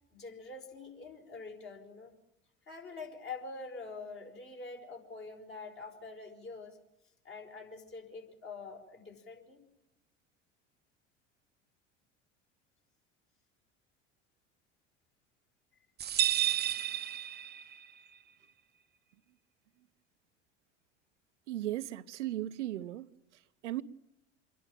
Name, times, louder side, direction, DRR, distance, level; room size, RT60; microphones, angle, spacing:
voice 1, 0.1-2.1 2.7-6.8 7.2-9.6, left 4 dB, 35° left, 4.8 m, -45 dB
sound 1, 16.0-17.9, right 11 dB, 25° right, 0.8 m, -31 dB
voice 2, 21.5-23.1 23.6-23.8, right 14 dB, 75° right, 0.7 m, -36 dB
27.0 x 11.0 x 8.8 m
hypercardioid pair, 75°, 36 cm